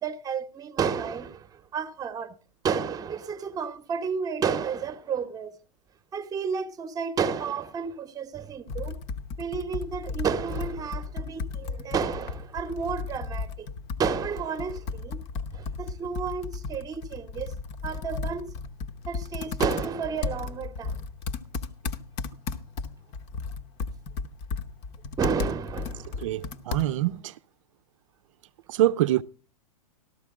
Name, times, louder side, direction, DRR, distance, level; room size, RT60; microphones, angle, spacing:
voice 1, 0.0-2.4 2.6-5.6 6.1-9.0 9.4-13.7 14.0-15.2 15.5-17.5 17.8-18.5 19.1-21.0 25.2-26.4, right 6 dB, 20° right, 1.0 m, -31 dB
Computer keyboard, 8.7-27.2, left 4 dB, 35° left, 0.9 m, -35 dB
voice 2, 26.2-27.4 28.7-29.2, right 14 dB, 55° right, 0.6 m, -25 dB
13.0 x 13.0 x 3.6 m
hypercardioid pair, 105°, 19 cm